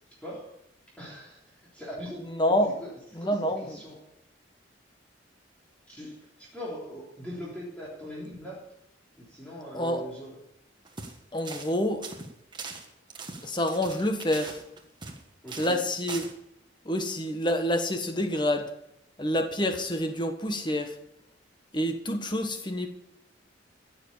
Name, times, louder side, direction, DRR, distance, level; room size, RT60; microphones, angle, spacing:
voice 1, 0.1-0.6 1.0-2.4 2.8-4.0 5.9-8.6 9.2-10.4 15.4-15.9, equal, 5° left, -7 dB, 3.5 m, -41 dB
voice 2, 2.3-2.7 3.1-3.8 9.7-10.1 11.3-12.1 13.4-14.6 15.6-16.3 16.8-18.7 19.2-21.0 21.7-22.9, equal, 25° left, 6 dB, 1.4 m, -27 dB
sound 1, 10.8-11.2 11.4-11.7 12.0-15.2 15.5-15.8 16.1-16.3, right 4 dB, 25° right, 1.5 m, -40 dB
15.5 x 7.2 x 8.4 m, 0.79 s
head